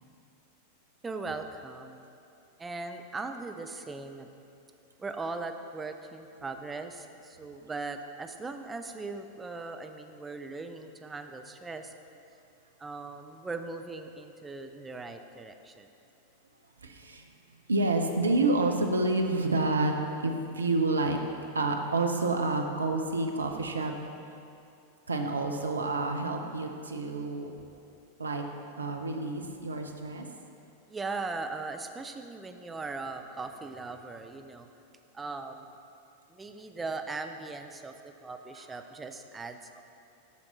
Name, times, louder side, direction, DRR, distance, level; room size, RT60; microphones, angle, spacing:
voice 1, 1.0-2.0 2.6-4.3 5.0-11.9 12.8-15.9 30.9-34.7 35.1-35.7 36.3-39.8, right 3 dB, 15° right, 6 dB, 0.5 m, -39 dB
voice 2, 16.8-19.9 20.2-21.3 21.5-23.9 25.1-27.5 28.2-28.4 28.8-30.3 38.5-38.6, right 2 dB, 75° right, 4 dB, 0.6 m, -29 dB
8.4 x 5.9 x 4.0 m, 2.6 s
figure-of-eight pair, 90°, 0 cm